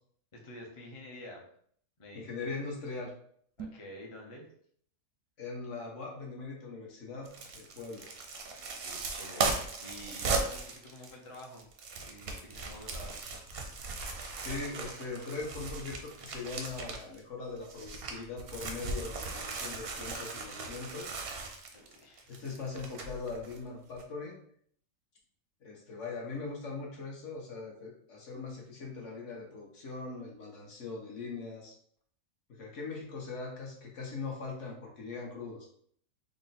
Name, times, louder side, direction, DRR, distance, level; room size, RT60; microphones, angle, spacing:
voice 1, 0.3-1.4 2.0-2.5 3.6-4.5 8.8-11.6 12.0-13.2 21.7-22.5, left 1 dB, 35° left, -1 dB, 0.5 m, -49 dB
voice 2, 2.1-3.1 5.4-8.1 14.4-21.2 22.3-24.3 25.6-31.7 32.6-35.7, left 4 dB, 60° left, -1 dB, 1.2 m, -41 dB
sound 1, 3.5-4.0, right 6 dB, 85° right, 1.1 m, -45 dB
sound 2, 7.3-17.2 17.6-23.6 24.0-24.1, right 3 dB, 60° right, 0.6 m, -38 dB
3.6 x 2.1 x 4.0 m, 0.62 s
omnidirectional pair, 1.5 m